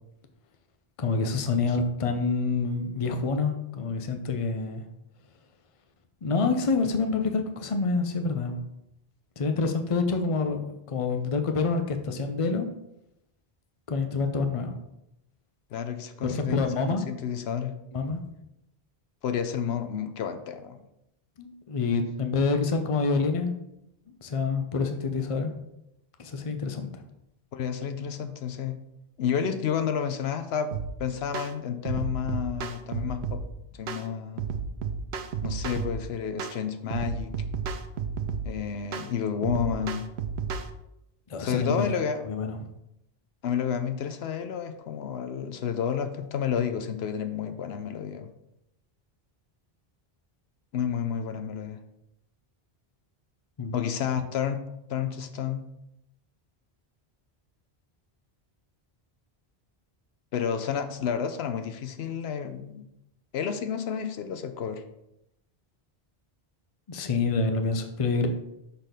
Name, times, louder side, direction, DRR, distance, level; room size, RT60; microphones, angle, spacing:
voice 1, 1.0-4.8 6.2-8.6 9.4-12.7 13.9-14.7 16.3-17.0 17.9-18.2 21.4-23.5 24.2-25.5 26.2-27.0 41.3-41.9 42.3-42.6 53.6-53.7 66.9-68.3, left 4 dB, 35° left, 5 dB, 0.7 m, -27 dB
voice 2, 15.7-16.6 17.1-17.7 19.2-20.8 27.5-28.8 29.2-33.4 33.8-34.4 35.4-37.3 38.4-40.1 41.4-42.2 43.4-48.3 50.7-51.8 53.7-54.6 54.9-55.6 60.3-62.9 63.3-64.8, left 7 dB, 80° left, 9 dB, 0.9 m, -30 dB
sound 1, 30.7-30.9 31.3-31.5 31.9-33.5 33.9-34.1 34.4-36.0 36.4-36.6 36.9-38.5 38.9-39.1 39.4-40.7, right 6 dB, 85° right, 0.9 m, -32 dB
6.3 x 4.1 x 5.1 m, 0.84 s
omnidirectional pair, 1.1 m